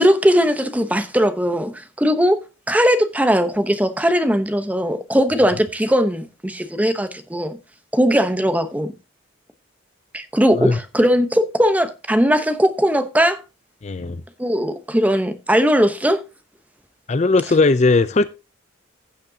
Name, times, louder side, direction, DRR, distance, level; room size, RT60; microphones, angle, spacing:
voice 1, 0.0-2.4 2.7-7.6 7.9-8.9 10.1-13.4 14.4-16.2, equal, 10° right, 0.9 m, -19 dB
voice 2, 13.8-14.2 17.1-18.3, left 3 dB, 35° left, 0.5 m, -17 dB
15.5 x 6.6 x 2.8 m
head